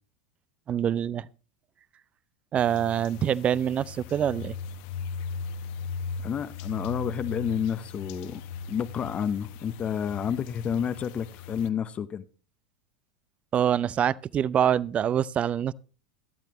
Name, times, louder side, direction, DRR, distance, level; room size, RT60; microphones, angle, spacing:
voice 1, 0.7-1.3 2.5-4.6 13.5-15.7, right 9 dB, 30° right, 0.5 m, -25 dB
sound 1, 2.5-11.7, left 5 dB, 55° left, 0.9 m, -38 dB
voice 2, 6.2-8.4 8.7-12.2, left 8 dB, 30° left, 0.7 m, -30 dB
16.5 x 12.0 x 3.0 m
hypercardioid pair, 90°, 4 cm